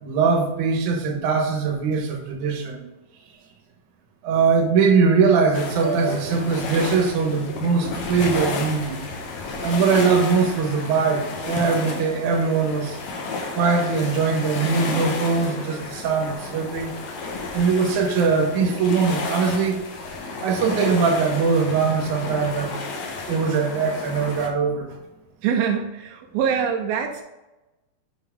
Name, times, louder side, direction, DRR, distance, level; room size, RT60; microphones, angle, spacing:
voice 1, 0.0-2.9 4.2-9.0 9.6-13.0 13.6-16.9 17.5-19.8 20.4-22.7 23.3-24.9, right 5 dB, 65° right, 1 dB, 2.3 m, -21 dB
sound 1, 5.5-24.5, left 3 dB, 75° left, 1.6 m, -32 dB
voice 2, 25.4-27.2, right 7 dB, 85° right, 4 dB, 2.5 m, -24 dB
7.2 x 5.3 x 3.5 m, 1.0 s
omnidirectional pair, 4.3 m